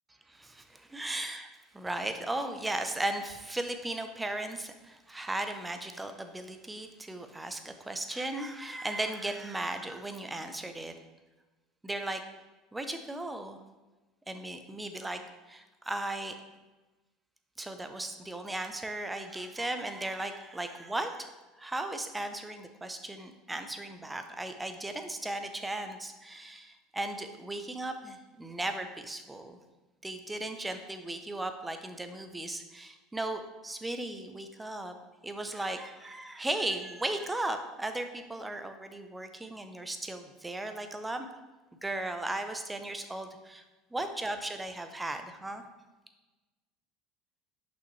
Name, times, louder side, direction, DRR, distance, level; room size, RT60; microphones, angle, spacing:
voice 1, 0.3-1.5 1.7-10.9 11.8-12.2 12.7-13.6 14.3-15.2 15.5-16.3 17.6-29.6 30.0-34.9 35.2-41.3 41.8-43.6 43.9-45.6, right 1 dB, 10° right, 7 dB, 0.7 m, -36 dB
5.9 x 5.9 x 3.2 m, 1.2 s
hypercardioid pair, 90°, 0 cm